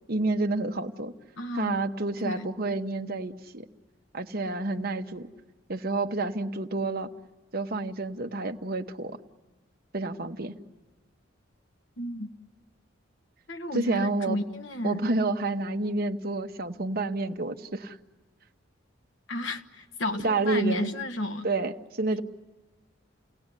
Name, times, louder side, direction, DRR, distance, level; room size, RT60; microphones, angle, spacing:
voice 1, 0.1-1.1 1.5-3.7 4.1-5.3 5.7-7.1 7.5-9.2 9.9-10.6 13.7-14.4 14.8-18.0 20.2-20.9 21.4-22.2, right 2 dB, 50° right, 5 dB, 1.2 m, -29 dB
voice 2, 1.4-1.8 2.2-2.5 12.0-12.3 13.5-15.1 19.3-21.5, left 1 dB, 65° left, 6 dB, 1.3 m, -32 dB
30.0 x 18.5 x 9.9 m, 1.2 s
head